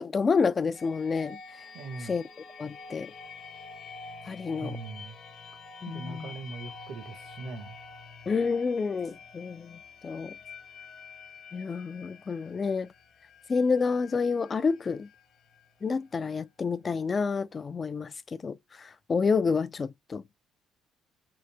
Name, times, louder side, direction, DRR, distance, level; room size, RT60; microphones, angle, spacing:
voice 1, 0.0-1.4 2.1-2.2 2.6-3.1 4.3-4.8 5.8-6.3 8.3-10.3 11.5-12.9 13.5-15.1 15.8-20.2, left 5 dB, 35° left, 0.3 m, -29 dB
sound 1, 0.7-16.4, left 4 dB, 55° left, 0.9 m, -48 dB
voice 2, 1.7-2.2 4.6-5.2 5.8-7.8, right 4 dB, 65° right, 1.0 m, -40 dB
3.9 x 2.5 x 3.2 m
cardioid pair, 90°, 0 cm